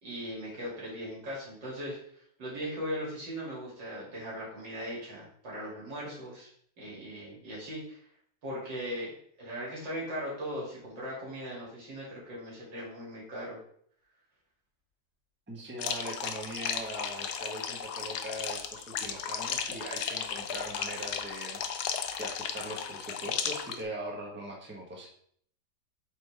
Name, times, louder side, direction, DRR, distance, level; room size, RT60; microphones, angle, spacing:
voice 1, 0.0-2.0 2.4-6.5 6.8-8.0 8.4-13.6, equal, 80° right, -6 dB, 3.4 m, -39 dB
voice 2, 15.5-21.6 21.9-25.1, right 1 dB, 10° right, -1 dB, 1.0 m, -41 dB
sound 1, 15.8-23.8, left 7 dB, 70° left, 1.1 m, -35 dB
7.8 x 4.2 x 3.4 m, 0.63 s
omnidirectional pair, 1.9 m